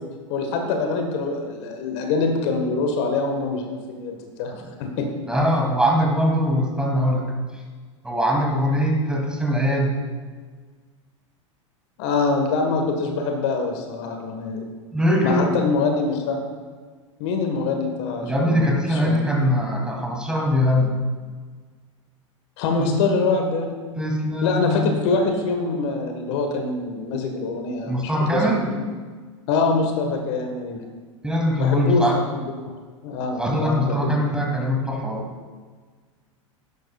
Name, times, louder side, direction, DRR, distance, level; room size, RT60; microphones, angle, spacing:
voice 1, 0.3-4.5 4.8-5.1 12.0-14.7 15.2-16.4 17.2-19.1 22.6-24.0 24.4-28.7 29.5-30.9 31.6-32.1 33.0-34.1, left 4 dB, 60° left, 3 dB, 1.5 m, -24 dB
voice 2, 5.3-7.3 8.0-10.0 14.9-15.5 18.2-20.9 22.8-23.0 24.0-24.9 27.9-28.7 31.2-32.2 33.4-35.2, equal, 5° right, -1 dB, 2.5 m, -22 dB
12.0 x 11.0 x 2.4 m, 1.5 s
hypercardioid pair, 95°, 17 cm